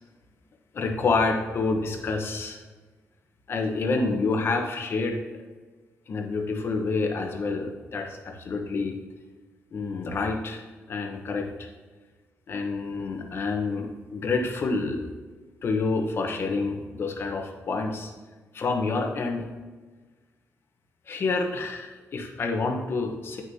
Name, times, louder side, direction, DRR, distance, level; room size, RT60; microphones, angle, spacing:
voice 1, 0.7-2.6 3.5-5.2 6.1-9.0 9.7-11.7 12.5-15.1 15.6-18.1 18.5-19.5 21.1-23.4, left 3 dB, 50° left, 3 dB, 1.0 m, -28 dB
8.9 x 6.3 x 2.8 m, 1.3 s
wide cardioid pair, 135°, 5 cm